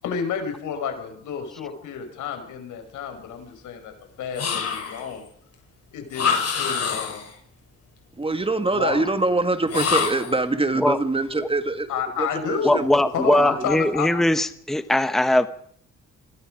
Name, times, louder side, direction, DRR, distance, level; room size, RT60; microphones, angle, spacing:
voice 1, 0.0-3.9 4.2-5.3 5.9-7.2 8.7-9.0 9.3-9.4 11.9-12.9 13.1-14.1, left 7 dB, 85° left, 6 dB, 5.4 m, -30 dB
sound 1, 4.3-5.1 6.1-7.3 9.7-10.4, left 6 dB, 55° left, 7.5 m, -25 dB
voice 2, 8.2-11.9 12.2-13.0 13.3-13.7, right 2 dB, 20° right, 9 dB, 2.1 m, -24 dB
voice 3, 12.6-15.5, left 1 dB, ahead, 11 dB, 1.2 m, -20 dB
27.0 x 21.5 x 5.1 m, 0.63 s
cardioid pair, 90°, 30 cm